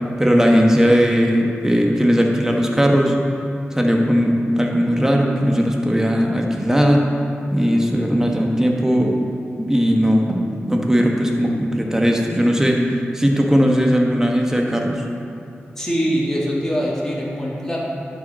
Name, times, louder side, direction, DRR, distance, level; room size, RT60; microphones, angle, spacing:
voice 1, 0.2-3.2 3.7-7.1 7.5-9.2 9.6-12.8 13.1-15.0, equal, 10° right, 0 dB, 1.2 m, -18 dB
voice 2, 15.8-17.8, equal, 10° left, -6 dB, 2.1 m, -23 dB
11.0 x 5.1 x 4.2 m, 2.7 s
cardioid pair, 60°, 4 cm